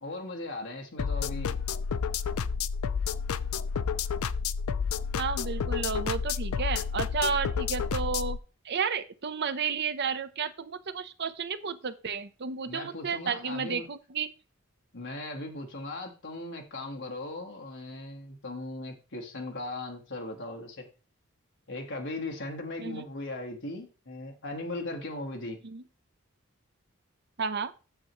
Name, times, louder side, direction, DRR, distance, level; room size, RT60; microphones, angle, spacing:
voice 1, 0.0-1.6 12.7-13.9 14.9-20.9 21.7-25.6, left 2 dB, 60° left, 1.6 m, -38 dB
sound 1, 1.0-8.4, left 6 dB, 85° left, 0.4 m, -30 dB
voice 2, 5.2-8.4 8.6-14.3 22.8-23.0 25.6-25.8 27.4-27.7, right 5 dB, 55° right, 0.7 m, -32 dB
8.7 x 7.2 x 3.1 m
head